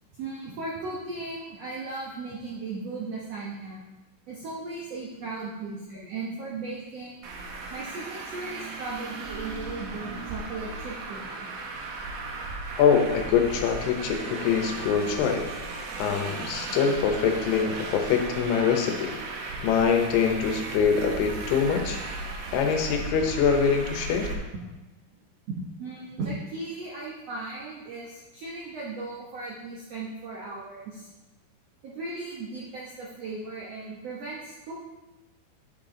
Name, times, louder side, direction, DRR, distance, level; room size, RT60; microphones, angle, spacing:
voice 1, 0.1-3.8 4.3-7.2 7.7-11.2 25.5-31.1 31.8-34.7, right 3 dB, 90° right, -5 dB, 1.4 m, -36 dB
Traffic noise roadway noise, 7.2-24.3, right 3 dB, 70° right, 2.0 m, -36 dB
voice 2, 12.8-15.4 16.0-19.1 19.6-22.0 22.5-24.3, left 6 dB, 85° left, 4 dB, 3.0 m, -24 dB
9.2 x 6.0 x 3.8 m, 1.1 s
omnidirectional pair, 4.6 m